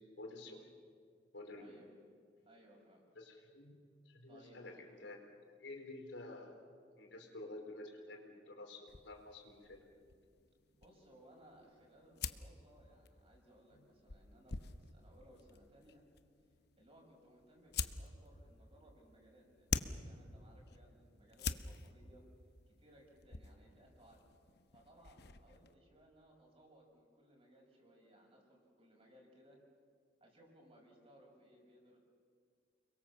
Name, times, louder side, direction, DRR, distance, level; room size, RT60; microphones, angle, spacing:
voice 1, 0.2-0.7 1.3-1.8 3.2-4.7 5.0-5.2 5.6-6.6 7.0-9.8, left 2 dB, 85° left, 2 dB, 4.3 m, -50 dB
voice 2, 1.6-1.9 2.5-3.1 4.3-4.7 10.8-16.0 16.8-22.2 22.7-24.2 24.7-29.6 30.2-32.0, right 1 dB, 35° right, -1 dB, 6.6 m, -63 dB
sound 1, 8.9-25.7, left 5 dB, 60° left, 0.9 m, -47 dB
30.0 x 22.0 x 7.4 m, 2.1 s
head